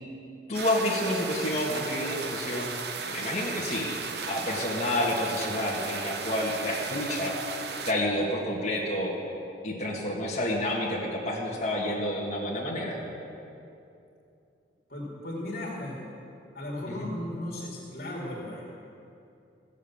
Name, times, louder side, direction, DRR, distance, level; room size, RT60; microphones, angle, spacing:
voice 1, 0.5-2.7 3.1-3.9 4.3-7.4 7.9-9.1 9.6-13.0 16.9-17.1, left 1 dB, 35° left, -5 dB, 1.9 m, -29 dB
sound 1, 0.5-7.9, right 5 dB, 60° right, 0.7 m, -35 dB
voice 2, 14.9-16.0 16.5-18.6, left 1 dB, 50° left, -4 dB, 2.3 m, -36 dB
15.5 x 7.3 x 7.2 m, 2.6 s
head